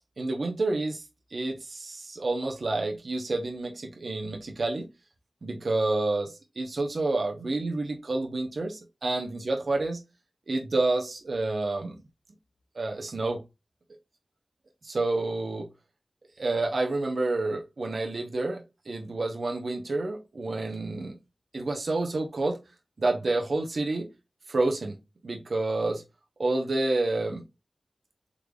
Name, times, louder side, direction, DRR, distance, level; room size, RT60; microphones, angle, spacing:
voice 1, 0.2-1.0 1.3-4.9 5.4-10.0 10.5-11.9 12.7-13.4 14.8-15.7 16.4-21.2 21.5-22.6 23.0-24.1 24.5-25.0 25.2-26.0 26.4-27.4, right 2 dB, 80° right, 0.7 m, -29 dB
3.8 x 3.3 x 2.3 m
wide cardioid pair, 50°, 0 cm